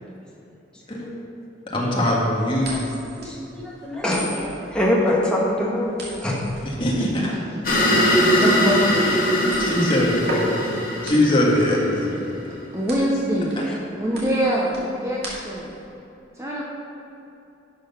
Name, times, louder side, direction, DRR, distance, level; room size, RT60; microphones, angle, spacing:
voice 1, 1.7-2.7 6.6-7.4 9.6-12.2 13.6-13.7, left 1 dB, 25° left, -4 dB, 1.8 m, -22 dB
sound 1, 2.6-15.8, right 1 dB, 55° right, 2.5 m, -36 dB
voice 2, 3.2-5.9 6.2-6.4 14.1-14.2, left 1 dB, 5° left, -5 dB, 1.7 m, -23 dB
sound 2, 7.6-12.2, equal, 45° left, 2.3 m, -21 dB
voice 3, 7.9-9.3 12.7-13.5 13.9-15.7 16.4-16.6, equal, 15° right, -4 dB, 0.9 m, -24 dB
11.5 x 6.3 x 5.9 m, 3.0 s
head